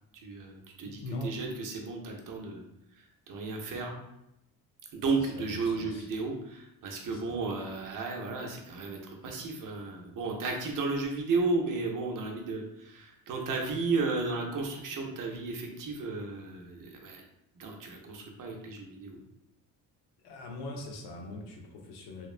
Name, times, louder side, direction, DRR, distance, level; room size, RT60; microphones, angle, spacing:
voice 1, 0.2-2.6 2.9-4.0 4.9-17.2 17.6-19.2, right 3 dB, 55° right, 1 dB, 0.6 m, -33 dB
voice 2, 0.8-1.3 5.2-6.1 7.0-7.4 20.2-22.3, left 1 dB, 85° left, 1 dB, 0.7 m, -41 dB
2.9 x 2.0 x 2.4 m, 0.84 s
cardioid pair, 95°, 39 cm